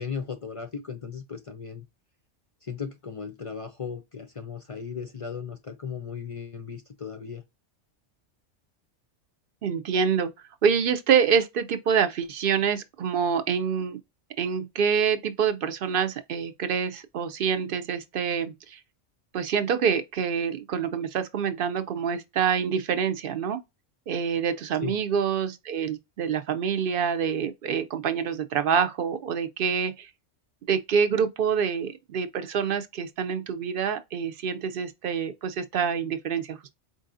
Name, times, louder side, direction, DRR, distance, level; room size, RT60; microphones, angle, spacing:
voice 1, 0.0-1.9 2.6-7.4 24.8-25.0, left 6 dB, 55° left, 0.3 m, -36 dB
voice 2, 9.6-10.3 10.6-14.0 14.4-18.8 19.3-23.6 24.1-30.1 30.7-36.7, right 7 dB, 60° right, 0.6 m, -26 dB
4.6 x 2.6 x 2.5 m
omnidirectional pair, 1.2 m